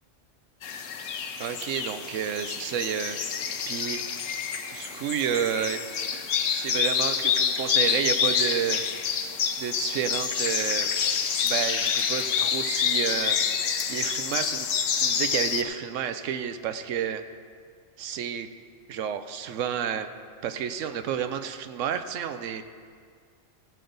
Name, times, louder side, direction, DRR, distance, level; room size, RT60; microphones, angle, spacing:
sound 1, 0.6-15.6, left 7 dB, 80° left, 1.1 m, -27 dB
voice 1, 1.4-3.2 3.7-4.0 4.7-5.8 6.5-8.8 9.6-10.9 11.4-13.4 13.9-14.7 14.9-17.2 18.0-18.5 18.9-20.1 20.4-22.6, right 8 dB, 85° right, 10 dB, 1.0 m, -30 dB
15.0 x 8.4 x 3.9 m, 2.1 s
omnidirectional pair, 1.3 m